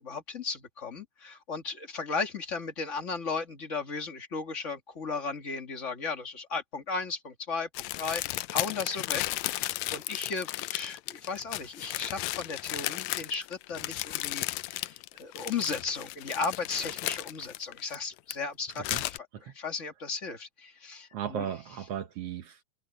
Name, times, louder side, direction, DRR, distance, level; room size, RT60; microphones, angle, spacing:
voice 1, 0.0-21.5, left 4 dB, 30° left, 1.8 m, -36 dB
sound 1, 7.7-18.3 18.7-19.2, left 18 dB, 80° left, 1.6 m, -34 dB
voice 2, 21.1-22.6, right 9 dB, 65° right, 1.7 m, -36 dB
omnidirectional pair, 3.5 m